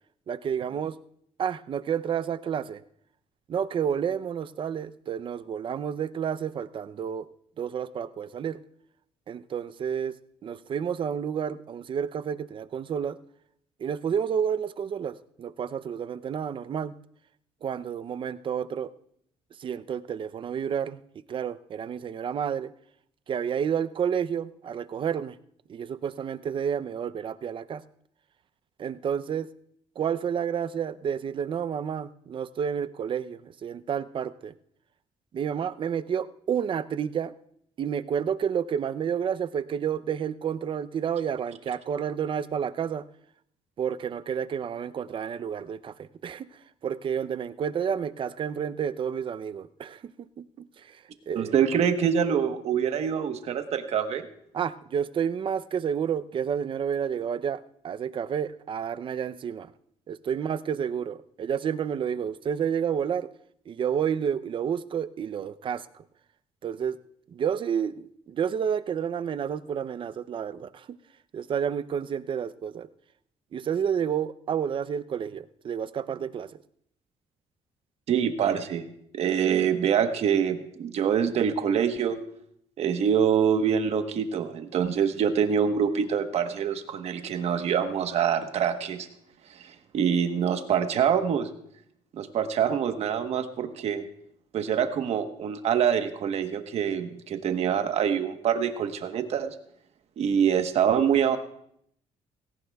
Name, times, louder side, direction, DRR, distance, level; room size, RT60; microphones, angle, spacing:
voice 1, 0.3-1.0 1.4-2.8 3.5-7.3 7.6-8.6 9.3-10.1 10.4-13.2 13.8-16.9 17.6-18.9 19.6-21.0 21.3-22.7 23.3-25.4 25.7-27.8 28.8-29.5 30.0-34.6 35.3-37.3 37.8-43.0 43.8-50.3 50.8-51.6 54.5-59.7 60.1-63.3 63.7-65.9 66.6-67.0 67.3-71.0 71.3-72.9 73.5-76.5, right 8 dB, 45° right, 14 dB, 0.6 m, -30 dB
voice 2, 51.3-54.3 78.1-78.8 79.1-82.2 82.8-89.1 89.6-91.5 92.1-94.0 94.5-99.5 100.2-101.4, right 8 dB, 60° right, 7 dB, 1.2 m, -25 dB
18.5 x 17.5 x 2.3 m, 0.70 s
cardioid pair, 115°, 12 cm